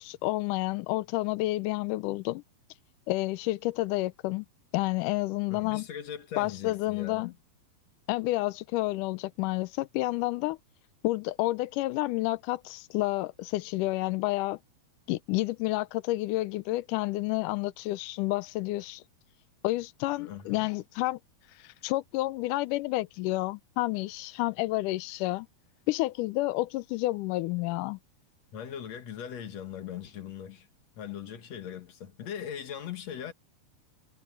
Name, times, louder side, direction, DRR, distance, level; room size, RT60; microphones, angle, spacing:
voice 1, 0.0-2.4 3.1-4.5 4.7-5.9 6.4-7.3 8.1-10.6 11.0-14.6 15.1-19.0 19.6-21.2 21.6-25.5 25.9-28.0, left 19 dB, 85° left, 1.8 m, -30 dB
voice 2, 5.5-7.4 20.2-20.7 28.5-30.7 31.0-33.3, left 9 dB, 50° left, 2.9 m, -40 dB
omnidirectional pair, 4.4 m